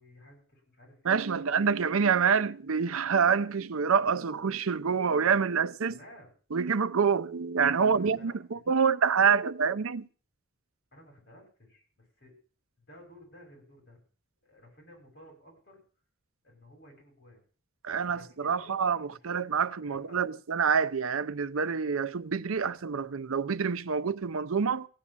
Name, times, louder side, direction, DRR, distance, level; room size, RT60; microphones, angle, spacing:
voice 1, 0.0-1.6 5.9-6.3 7.8-8.4 8.7-8.8 10.9-12.3 12.8-14.0 14.4-15.8 16.4-17.4 18.1-18.8 19.8-20.2, equal, 50° left, 7.6 m, -54 dB
voice 2, 1.0-6.0 6.5-10.1 17.8-24.9, right 6 dB, 80° right, 0.6 m, -27 dB
16.0 x 8.3 x 7.3 m
head